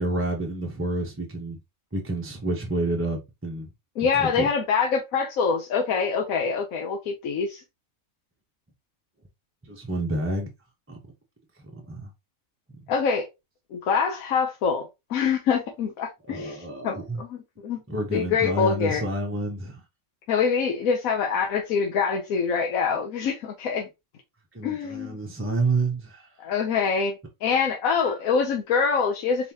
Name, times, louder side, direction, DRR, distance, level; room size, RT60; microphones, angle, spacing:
voice 1, 0.0-1.6 1.9-3.7 4.2-4.5 9.6-10.5 10.9-11.0 11.6-12.1 12.7-12.8 16.3-17.2 17.9-19.8 24.5-26.3, right 2 dB, 15° right, 0.5 m, -29 dB
voice 2, 4.0-7.6 12.9-13.3 13.7-17.8 18.1-19.0 20.3-23.9 24.6-25.2 26.4-29.5, left 6 dB, 85° left, 1.2 m, -25 dB
4.1 x 3.7 x 2.8 m
omnidirectional pair, 1.4 m